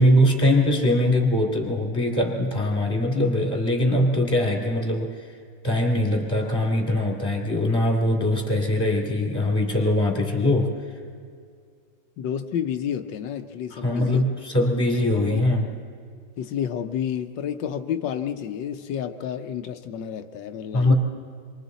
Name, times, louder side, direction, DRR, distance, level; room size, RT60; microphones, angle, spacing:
voice 1, 0.0-5.2 5.6-10.8 13.7-15.7 20.7-20.9, left 1 dB, 10° left, 0 dB, 2.6 m, -22 dB
voice 2, 12.2-14.3 14.6-14.7 15.1-15.4 16.4-20.9, left 8 dB, 85° left, 6 dB, 1.4 m, -30 dB
28.0 x 23.5 x 4.0 m, 2.2 s
omnidirectional pair, 1.9 m